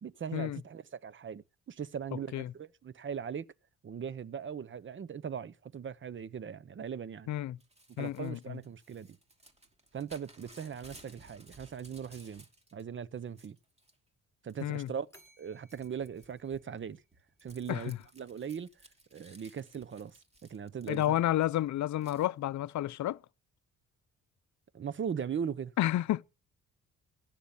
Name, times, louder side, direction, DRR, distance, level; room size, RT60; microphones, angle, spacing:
voice 1, 0.0-3.5 3.8-7.3 7.9-9.2 9.9-12.4 12.7-13.6 14.4-15.1 15.4-17.0 17.4-18.7 19.1-20.1 20.5-21.2 24.7-25.7, right 7 dB, 40° right, 0.9 m, -39 dB
voice 2, 7.3-7.6 8.0-8.6 14.6-14.9 17.7-18.0 20.9-23.2 25.8-26.2, left 13 dB, 70° left, 0.7 m, -31 dB
Crumpling crinkling / Tearing, 7.6-12.8 13.2-14.0 14.5-14.9 15.2-21.4 22.0-22.3, right 2 dB, 20° right, 2.6 m, -58 dB
Bell, 15.1-17.4, equal, 10° left, 6.0 m, -64 dB
16.0 x 7.3 x 7.2 m
cardioid pair, 90°, 30 cm